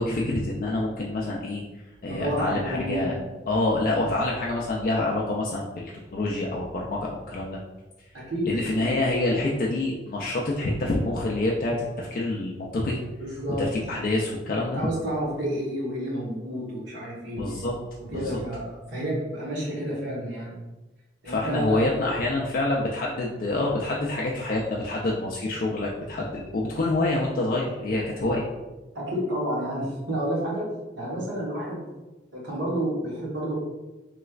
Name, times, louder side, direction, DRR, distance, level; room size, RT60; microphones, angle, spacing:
voice 1, 0.0-1.6 2.0-3.1 3.5-7.6 8.4-13.0 13.6-14.8 17.4-17.7 18.1-18.4 21.2-28.4, left 2 dB, 50° left, -3 dB, 0.3 m, -27 dB
voice 2, 2.1-3.1 4.0-4.1 8.1-8.8 13.2-13.7 14.6-17.4 18.0-20.6 21.2-21.8 28.9-30.7 31.0-31.9 32.3-33.6, right 1 dB, 90° right, -6 dB, 1.3 m, -30 dB
3.2 x 3.0 x 2.4 m, 1.1 s
head